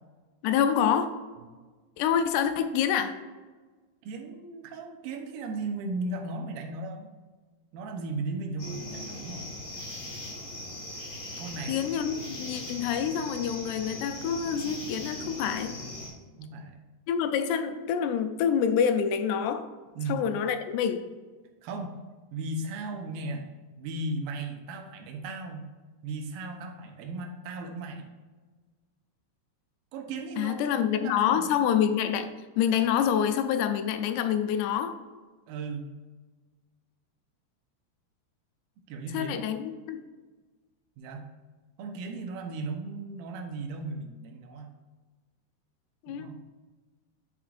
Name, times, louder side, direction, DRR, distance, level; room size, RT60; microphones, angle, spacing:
voice 1, 0.4-1.1 2.0-3.1 11.7-15.7 17.1-19.7 20.1-21.0 30.4-32.3 32.6-34.9 39.1-40.0 46.0-46.3, left 8 dB, 90° left, 8 dB, 2.7 m, -27 dB
voice 2, 4.0-7.1 7.7-9.5 11.4-11.9 16.4-16.9 20.0-20.2 21.6-22.0 22.3-23.4 23.8-25.7 26.0-28.0 29.9-31.5 35.5-35.9 38.9-39.4 41.0-41.3 41.8-44.7 46.1-46.4, right 3 dB, 75° right, 3 dB, 2.5 m, -36 dB
sound 1, 8.6-16.1, left 1 dB, 50° left, 2.4 m, -39 dB
8.6 x 5.9 x 2.5 m, 1.3 s
omnidirectional pair, 4.7 m